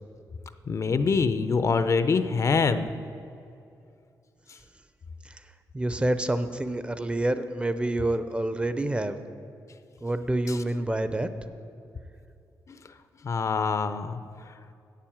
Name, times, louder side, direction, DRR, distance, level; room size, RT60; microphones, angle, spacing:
voice 1, 0.7-2.9 4.5-4.6 10.5-10.6 12.7-12.8 13.2-14.2 14.5-14.6, left 4 dB, 45° left, 11 dB, 0.5 m, -25 dB
voice 2, 5.7-9.2 10.0-11.3, right 1 dB, 15° right, 11 dB, 0.5 m, -27 dB
8.5 x 7.5 x 8.7 m, 2.6 s
cardioid pair, 105°, 7 cm